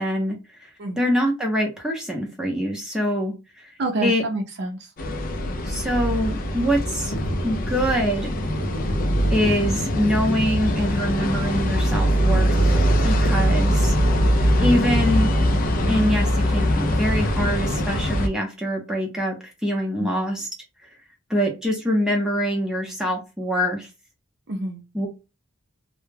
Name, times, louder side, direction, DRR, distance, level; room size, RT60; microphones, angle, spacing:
voice 1, 0.0-0.7 1.0-3.7 4.0-4.2 5.6-7.1 7.4-8.3 9.3-12.5 13.0-13.9 14.6-15.3 15.9-19.3 19.6-20.5 21.3-23.9 24.9-25.1, equal, 5° right, 0.7 m, -24 dB
voice 2, 3.8-4.9 20.0-20.3 24.5-24.8, right 2 dB, 55° right, 0.5 m, -28 dB
sound 1, 5.0-18.3, equal, 40° left, 0.4 m, -22 dB
sound 2, 7.1-13.8, equal, 85° left, 0.7 m, -33 dB
2.2 x 2.1 x 3.2 m
head